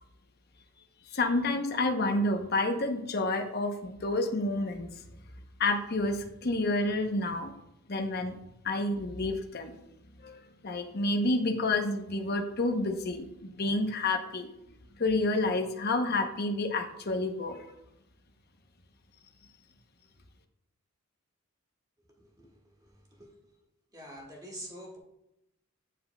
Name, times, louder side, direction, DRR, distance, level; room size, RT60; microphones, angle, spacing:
voice 1, 1.1-4.9 5.6-7.5 7.9-8.4 8.6-9.7 10.2-10.4 10.6-14.5 15.0-17.7, left 2 dB, 45° left, 4 dB, 0.8 m, -29 dB
voice 2, 22.2-23.6 23.9-25.0, equal, 15° right, -1 dB, 1.6 m, -47 dB
8.1 x 7.5 x 2.2 m, 0.85 s
head